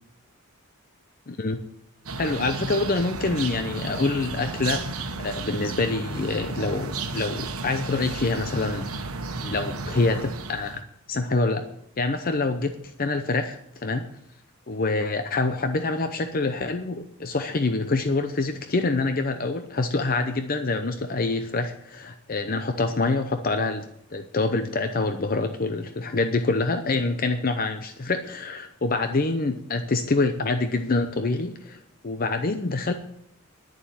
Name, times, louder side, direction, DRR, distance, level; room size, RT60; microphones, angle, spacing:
voice 1, 1.3-1.6 2.2-4.8 5.2-9.0 9.4-10.8 11.1-11.7 12.0-14.1 14.7-32.9, left 3 dB, 40° left, 8 dB, 0.7 m, -26 dB
sound 1, 2.1-10.8, right 3 dB, 90° right, 1.2 m, -33 dB
11.0 x 7.1 x 9.3 m, 0.76 s
head